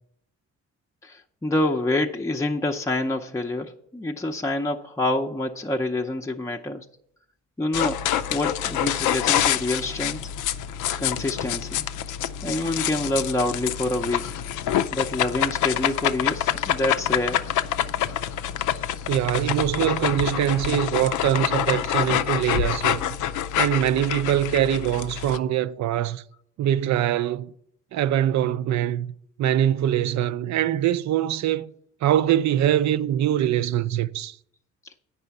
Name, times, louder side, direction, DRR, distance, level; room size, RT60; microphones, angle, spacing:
voice 1, 1.0-6.9 7.6-8.0 8.3-10.3 11.0-11.8 12.4-14.4 14.9-17.5 23.0-23.2 34.8-34.9, left 2 dB, 10° left, 0.6 m, -27 dB
sound 1, 7.7-25.4, left 11 dB, 85° left, 0.5 m, -26 dB
voice 2, 19.1-23.0 23.6-26.2 26.6-27.5 27.9-29.1 29.4-31.7 32.0-34.3, right 11 dB, 65° right, 0.5 m, -23 dB
8.9 x 5.5 x 7.0 m
cardioid pair, 90°, 30 cm